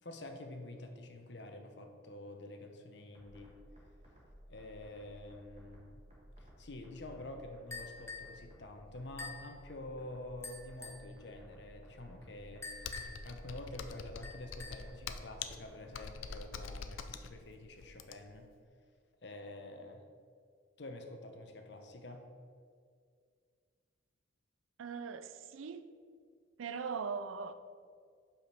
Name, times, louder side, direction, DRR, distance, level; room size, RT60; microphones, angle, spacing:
voice 1, 0.0-3.5 4.5-6.0 6.4-12.9 13.2-18.5 19.2-20.0 20.8-22.3, left 1 dB, 60° left, 0.8 m, -48 dB
sound 1, 3.1-16.8, equal, 35° right, 1.4 m, -57 dB
sound 2, 7.7-8.4 9.2-9.5 10.4-11.1 12.6-13.3 14.2-14.9, left 4 dB, 15° left, 0.6 m, -46 dB
Computer keyboard, 12.8-18.4, left 5 dB, 85° left, 0.5 m, -45 dB
voice 2, 24.8-25.8 26.6-27.5, right 5 dB, 85° right, 0.4 m, -40 dB
5.7 x 5.1 x 5.9 m
head